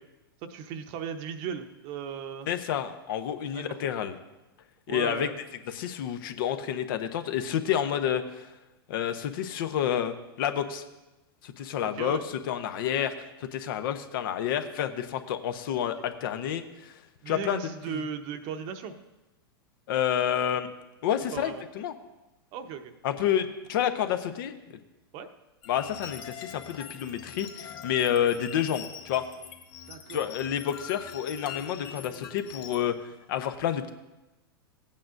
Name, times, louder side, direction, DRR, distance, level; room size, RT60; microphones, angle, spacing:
voice 1, 0.4-2.5 3.5-3.8 4.9-5.3 11.8-12.2 17.2-18.9 21.3-21.6 22.5-22.9 25.1-25.3 29.9-30.3, right 7 dB, 45° right, 8 dB, 0.9 m, -37 dB
voice 2, 2.5-4.2 4.9-5.3 5.7-8.5 8.9-10.8 11.4-13.1 13.4-17.0 17.3-17.6 17.9-18.0 19.9-20.7 21.0-21.9 23.0-24.8 25.7-29.2 30.1-33.9, left 9 dB, 60° left, 9 dB, 0.8 m, -29 dB
sound 1, 25.6-32.8, left 8 dB, 40° left, 1.2 m, -43 dB
16.0 x 8.6 x 2.6 m, 1.0 s
hypercardioid pair, 110°, 13 cm